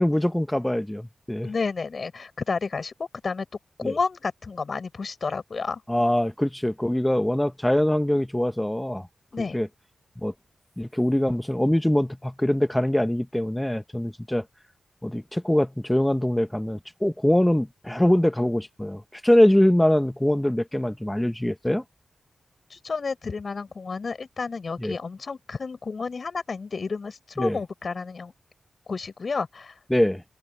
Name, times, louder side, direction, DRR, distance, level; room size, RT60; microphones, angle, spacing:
voice 1, 0.0-1.5 3.8-3.9 5.9-9.1 9.5-9.7 10.2-10.3 10.8-14.4 15.0-21.8 24.8-24.9 27.4-27.6 29.9-30.2, left 1 dB, 10° left, 1.4 m, -23 dB
voice 2, 1.4-3.5 3.8-5.8 9.3-9.6 22.7-28.3 28.9-29.8, left 4 dB, 60° left, 7.0 m, -31 dB
supercardioid pair, 40°, 0 cm